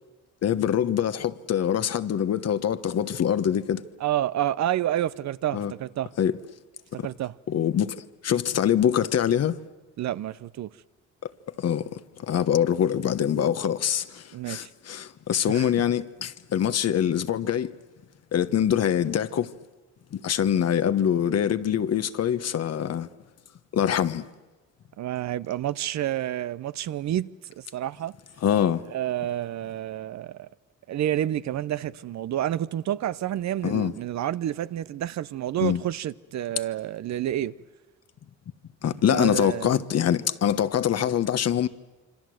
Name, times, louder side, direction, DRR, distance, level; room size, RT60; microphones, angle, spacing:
voice 1, 0.4-3.8 5.5-5.7 6.2-6.4 7.0-7.1 7.5-9.6 11.6-17.7 18.3-19.5 20.1-23.1 23.7-24.3 28.4-28.8 33.6-33.9 35.6-35.8 38.8-41.7, left 9 dB, 55° left, 1.2 m, -24 dB
voice 2, 4.0-6.1 6.9-7.4 10.0-10.7 14.3-14.7 15.5-15.7 25.0-27.3 27.6-28.1 28.9-30.5 30.9-37.5 39.0-39.8, right 12 dB, 65° right, 0.8 m, -29 dB
26.5 x 25.5 x 7.8 m
cardioid pair, 90°, 30 cm